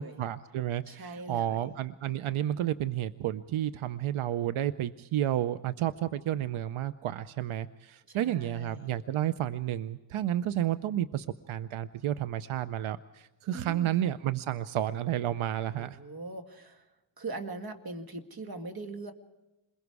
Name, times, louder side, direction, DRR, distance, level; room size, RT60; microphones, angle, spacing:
voice 1, 0.0-16.0, right 12 dB, 85° right, 14 dB, 0.7 m, -31 dB
voice 2, 0.9-1.7 8.1-9.0 13.5-14.0 15.7-16.8 17.2-19.1, right 2 dB, 45° right, 6 dB, 2.1 m, -41 dB
27.5 x 21.5 x 4.8 m, 0.99 s
cardioid pair, 75°, 48 cm